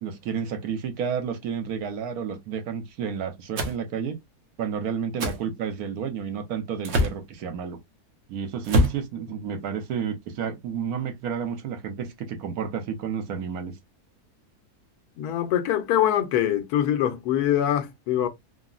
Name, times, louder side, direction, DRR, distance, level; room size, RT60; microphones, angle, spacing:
voice 1, 0.0-4.2 4.6-7.8 8.3-13.8, right 7 dB, 75° right, 1.2 m, -31 dB
sound 1, 3.6-3.8 5.2-5.4 6.8-7.2 8.6-9.0, left 1 dB, 55° right, 0.9 m, -23 dB
voice 2, 15.2-18.3, left 11 dB, 80° left, 1.1 m, -23 dB
3.7 x 2.0 x 2.3 m
omnidirectional pair, 1.6 m